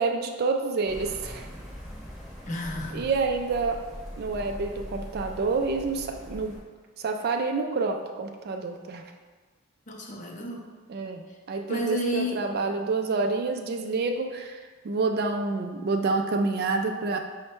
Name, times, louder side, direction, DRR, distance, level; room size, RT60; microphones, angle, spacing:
voice 1, 0.0-1.5 2.9-3.8 4.2-6.6 7.0-9.0 10.9-17.2, right 3 dB, 45° right, 4 dB, 0.3 m, -28 dB
sound 1, 0.9-6.6, equal, ahead, 0.8 m, -41 dB
voice 2, 2.5-3.1 9.9-10.7 11.3-11.4 11.7-12.4, equal, 35° left, 0 dB, 0.5 m, -31 dB
5.5 x 2.1 x 4.3 m, 1.4 s
head